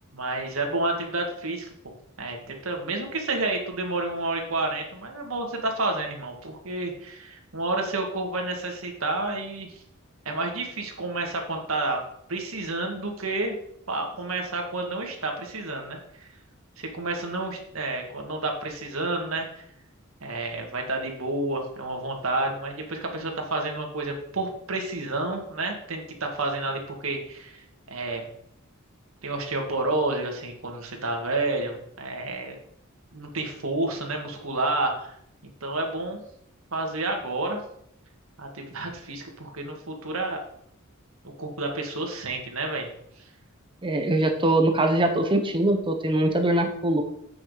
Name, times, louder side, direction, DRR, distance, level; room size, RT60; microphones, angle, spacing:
voice 1, 0.1-9.8 10.3-12.0 12.3-13.6 13.9-16.3 16.8-19.6 20.2-28.2 29.2-32.6 33.1-35.2 35.6-36.2 36.7-37.6 38.4-40.4 41.2-42.9, right 2 dB, 75° right, 2 dB, 2.0 m, -30 dB
voice 2, 43.8-47.0, right 1 dB, 25° right, 5 dB, 0.9 m, -22 dB
8.8 x 6.1 x 5.0 m, 0.72 s
head